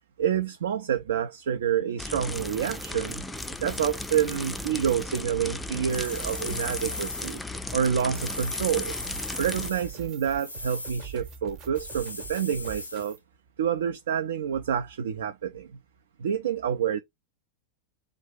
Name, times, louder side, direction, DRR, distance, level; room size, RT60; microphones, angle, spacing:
voice 1, 0.2-3.2 3.6-7.4 7.7-8.9 9.4-13.2 13.6-15.7 16.2-17.0, right 8 dB, 60° right, 0.3 m, -28 dB
sound 1, 2.0-9.7, left 2 dB, 5° left, 0.4 m, -36 dB
sound 2, 2.2-13.2, right 7 dB, 35° right, 0.8 m, -45 dB
sound 3, 5.9-7.4 8.1-10.0 10.4-11.2 11.7-13.1, left 2 dB, 80° left, 0.6 m, -38 dB
2.7 x 2.3 x 3.8 m
figure-of-eight pair, 90°, 0 cm